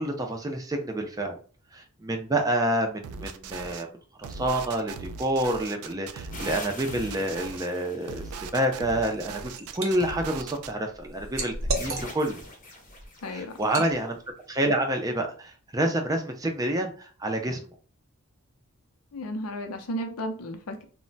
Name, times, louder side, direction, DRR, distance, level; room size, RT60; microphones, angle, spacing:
voice 1, 0.0-1.4 1.7-3.9 4.2-8.3 8.5-11.5 11.8-12.4 13.3-14.2 14.5-17.6, right 1 dB, 15° right, 0.4 m, -28 dB
sound 1, 3.0-3.8 4.2-7.7 8.1-10.7, right 5 dB, 85° right, 0.3 m, -39 dB
sound 2, 6.3-8.6 11.8-13.8, left 2 dB, 40° left, 0.7 m, -43 dB
Liquid, 9.1-9.9 10.3-12.4 12.9-13.1 13.6-13.9, right 2 dB, 65° right, 0.7 m, -33 dB
voice 2, 13.2-13.9 19.1-20.8, equal, 85° left, 0.5 m, -34 dB
2.1 x 2.1 x 3.8 m
head